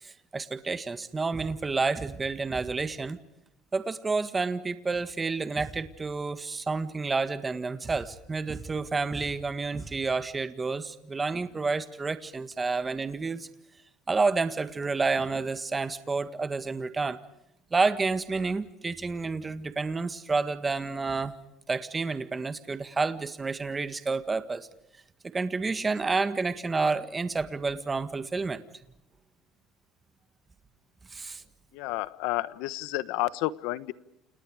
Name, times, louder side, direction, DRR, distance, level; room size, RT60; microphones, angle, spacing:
voice 1, 0.0-3.2 3.7-13.5 14.1-17.2 17.7-21.3 21.7-24.7 25.3-28.6 31.1-31.4, right 4 dB, 20° right, 11 dB, 1.7 m, -29 dB
voice 2, 31.7-33.9, left 17 dB, 80° left, 16 dB, 1.2 m, -31 dB
29.5 x 29.0 x 5.0 m, 0.79 s
cardioid pair, 135°, 0 cm